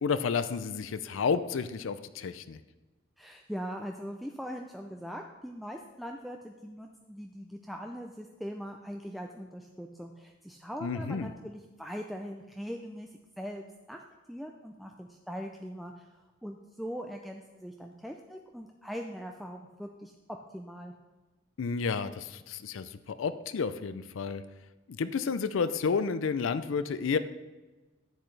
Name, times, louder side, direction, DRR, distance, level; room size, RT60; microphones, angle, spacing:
voice 1, 0.0-2.6 10.8-11.3 21.6-24.4 24.9-27.2, left 5 dB, 90° left, 12 dB, 0.4 m, -31 dB
voice 2, 3.2-13.1 13.4-14.0 14.3-16.1 16.4-20.1 20.5-20.9, equal, ahead, 2 dB, 0.4 m, -41 dB
10.5 x 8.1 x 3.3 m, 1.2 s
head